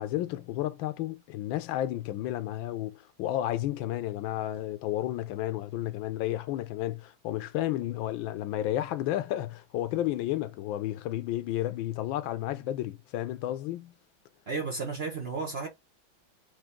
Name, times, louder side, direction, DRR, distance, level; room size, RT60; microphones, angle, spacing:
voice 1, 0.0-13.9, left 13 dB, 90° left, 1.4 m, -32 dB
voice 2, 14.5-15.7, right 4 dB, 45° right, 0.8 m, -33 dB
4.9 x 2.7 x 3.5 m
omnidirectional pair, 2.1 m